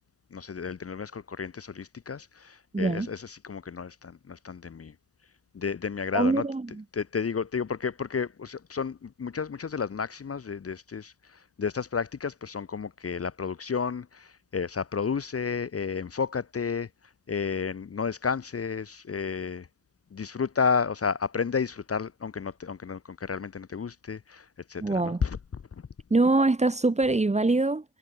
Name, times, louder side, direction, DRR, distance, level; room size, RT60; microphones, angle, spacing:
voice 1, 0.3-4.9 5.5-16.9 17.3-19.7 20.1-25.4, left 6 dB, 30° left, 1.0 m, -32 dB
voice 2, 2.7-3.1 6.1-6.7 24.8-25.2 26.1-27.8, right 2 dB, 15° right, 1.1 m, -23 dB
supercardioid pair, 65°, 47 cm